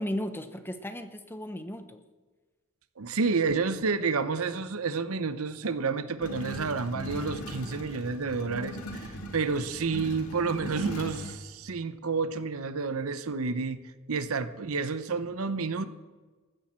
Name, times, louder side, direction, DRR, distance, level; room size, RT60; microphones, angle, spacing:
voice 1, 0.0-2.0, equal, 10° left, 9 dB, 0.7 m, -35 dB
voice 2, 3.0-13.8 14.1-15.9, right 4 dB, 75° right, 13 dB, 0.8 m, -30 dB
sound 1, 6.2-11.4, equal, 85° left, 1.8 m, -39 dB
14.5 x 13.5 x 4.4 m, 1.3 s
head